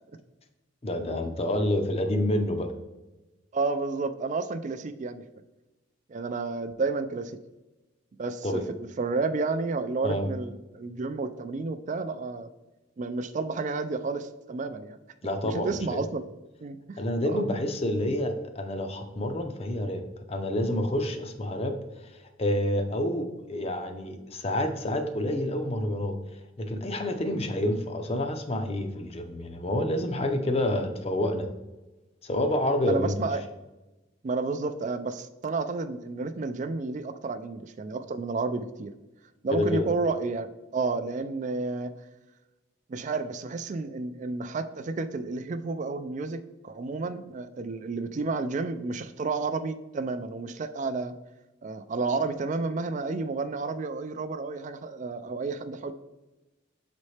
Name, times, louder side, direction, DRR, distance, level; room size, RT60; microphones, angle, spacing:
voice 1, 0.8-2.7 8.4-8.6 10.0-10.3 15.2-16.0 17.0-26.2 26.6-31.5 32.2-33.2 39.5-39.9, left 1 dB, 30° left, 6 dB, 0.6 m, -28 dB
voice 2, 3.5-5.2 6.1-7.4 8.2-8.6 9.0-12.5 13.0-15.0 15.4-16.3 16.6-17.0 17.3-17.4 32.9-33.4 34.2-38.9 39.4-41.9 42.9-51.1 51.6-55.9, right 3 dB, 40° right, 11 dB, 0.3 m, -31 dB
7.2 x 4.2 x 3.2 m, 1.1 s
head